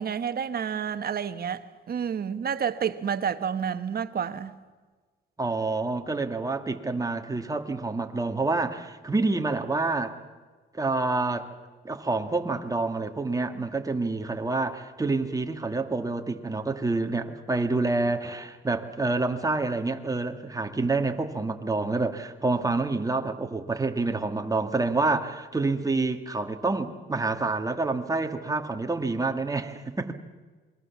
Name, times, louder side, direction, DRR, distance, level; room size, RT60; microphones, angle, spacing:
voice 1, 0.0-4.6, right 7 dB, 50° right, 1.4 m, -29 dB
voice 2, 5.4-10.2 10.7-11.5 11.8-30.1, right 3 dB, 15° right, 2.1 m, -28 dB
27.5 x 22.5 x 7.3 m
cardioid pair, 90°, 20 cm